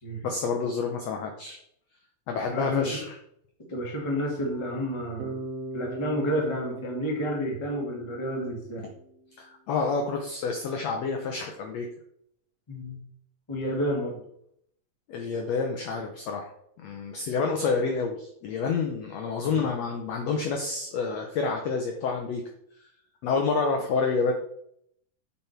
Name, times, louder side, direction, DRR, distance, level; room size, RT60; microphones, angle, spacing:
voice 1, 0.2-1.6 2.3-3.2 9.4-11.9 15.1-16.5 16.8-22.4 23.2-24.3, left 4 dB, 80° left, 3 dB, 1.5 m, -28 dB
voice 2, 2.5-3.0 3.7-5.3 5.7-8.8 12.7-13.0 13.5-14.2 19.4-19.8, equal, 25° left, -1 dB, 0.6 m, -30 dB
Bass guitar, 5.2-9.3, right 2 dB, 85° right, 1.4 m, -39 dB
7.4 x 5.6 x 4.5 m, 0.72 s
omnidirectional pair, 4.0 m